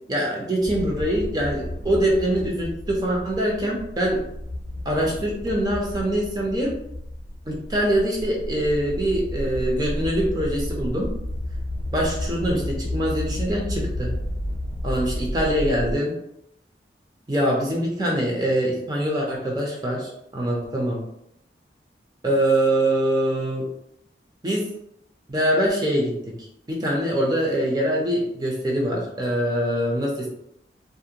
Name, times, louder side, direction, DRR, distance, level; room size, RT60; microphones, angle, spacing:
voice 1, 0.1-4.2 4.9-6.8 7.5-11.1 11.9-14.1 14.8-16.2 17.3-21.1 22.2-23.7 24.4-24.7 25.3-26.2 26.7-30.3, right 1 dB, 20° right, -2 dB, 0.5 m, -24 dB
sound 1, 0.6-16.0, left 1 dB, 50° left, 0.6 m, -31 dB
2.5 x 2.1 x 2.7 m, 0.78 s
head